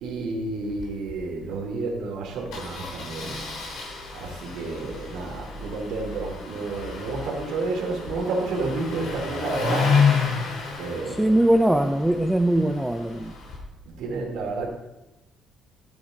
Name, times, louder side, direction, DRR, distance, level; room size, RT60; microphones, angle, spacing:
voice 1, 0.0-3.5 4.1-9.9 10.8-11.3 13.9-14.7, right 3 dB, 85° right, -1 dB, 2.6 m, -30 dB
Engine starting, 0.6-0.8 1.1-1.2 1.4-1.6 2.5-13.6, left 5 dB, 85° left, 3.2 m, -30 dB
voice 2, 11.1-13.3, right 1 dB, 5° right, 8 dB, 0.3 m, -21 dB
13.0 x 8.8 x 3.9 m, 1.0 s
cardioid pair, 175°, 0 cm